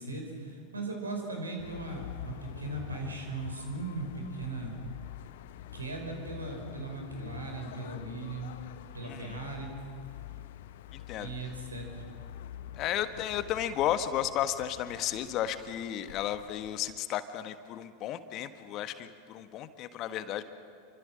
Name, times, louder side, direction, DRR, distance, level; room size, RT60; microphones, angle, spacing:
voice 1, 0.0-4.7 5.7-8.5 8.9-9.7 11.2-12.1, right 2 dB, 80° right, 2 dB, 5.7 m, -38 dB
sound 1, 1.6-17.0, left 12 dB, 55° left, 0.9 m, -47 dB
voice 2, 9.0-9.4 10.9-11.3 12.7-20.4, left 11 dB, 40° left, 10 dB, 1.4 m, -33 dB
28.5 x 25.0 x 6.2 m, 2.4 s
figure-of-eight pair, 85°, 0 cm